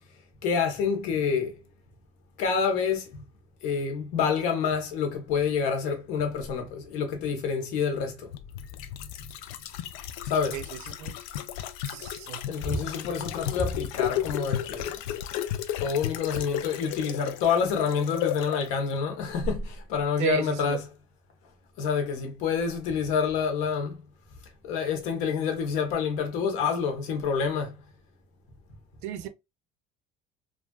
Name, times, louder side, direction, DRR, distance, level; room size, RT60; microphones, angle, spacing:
voice 1, 0.4-1.5 2.4-3.1 3.6-8.3 10.2-10.6 12.5-15.0 15.8-20.8 21.8-24.0 24.6-27.7, left 6 dB, 65° left, 1.0 m, -27 dB
sound 1, 8.3-18.7 19.0-19.1, left 11 dB, 90° left, 0.4 m, -34 dB
voice 2, 10.5-11.1 11.9-12.4 20.2-20.8 29.0-29.3, right 11 dB, 60° right, 0.5 m, -33 dB
3.3 x 2.5 x 2.3 m
cardioid pair, 170°, 13 cm